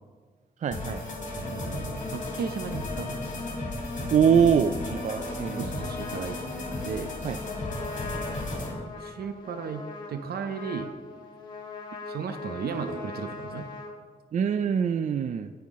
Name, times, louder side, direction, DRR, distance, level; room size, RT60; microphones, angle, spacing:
voice 1, 0.6-1.0 4.1-5.7 7.2-7.4 14.3-15.5, right 7 dB, 50° right, 9 dB, 0.4 m, -24 dB
sound 1, 0.7-8.7, left 2 dB, 50° left, 2.4 m, -34 dB
voice 2, 1.4-3.3 5.6-6.4 6.8-7.1 9.0-10.9 12.1-13.7, right 6 dB, 90° right, 8 dB, 0.7 m, -35 dB
Trumpet, 5.0-13.9, left 4 dB, 30° left, 1.8 m, -41 dB
17.0 x 5.8 x 3.6 m, 1.5 s
wide cardioid pair, 135°, 16 cm